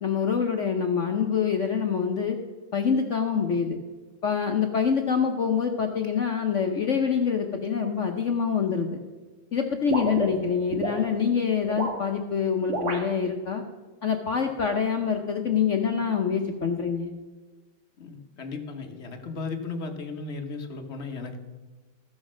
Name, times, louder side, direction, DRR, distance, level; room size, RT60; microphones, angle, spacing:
voice 1, 0.0-2.4 2.7-3.8 4.2-9.0 9.5-13.6 14.0-17.1, left 6 dB, 65° left, 4 dB, 0.7 m, -25 dB
sound 1, 9.9-11.0 11.6-12.0 12.7-13.1, right 2 dB, 40° right, 1.7 m, -29 dB
voice 2, 18.0-21.4, left 4 dB, 45° left, 5 dB, 1.0 m, -35 dB
14.5 x 6.4 x 6.2 m, 1.3 s
omnidirectional pair, 2.3 m